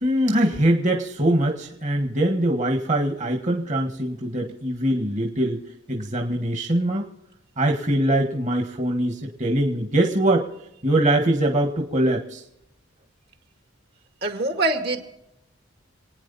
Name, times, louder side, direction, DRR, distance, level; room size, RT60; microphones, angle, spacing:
voice 1, 0.0-5.6 5.9-7.1 7.6-10.5 10.8-12.4, right 1 dB, 40° right, 3 dB, 1.7 m, -22 dB
voice 2, 14.2-15.0, right 2 dB, 55° right, 5 dB, 2.0 m, -24 dB
27.5 x 9.6 x 4.2 m, 0.85 s
head